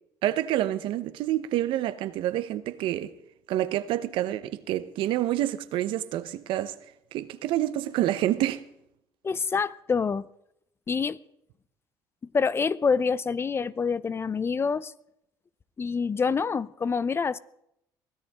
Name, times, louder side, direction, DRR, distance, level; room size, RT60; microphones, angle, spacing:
voice 1, 0.2-3.1 3.5-6.8 7.1-8.6, right 13 dB, 75° right, 1.0 m, -28 dB
voice 2, 9.2-10.2 10.9-11.2 12.3-14.9 15.8-17.4, left 5 dB, 30° left, 0.6 m, -26 dB
23.5 x 16.5 x 3.7 m
cardioid pair, 105°, 9 cm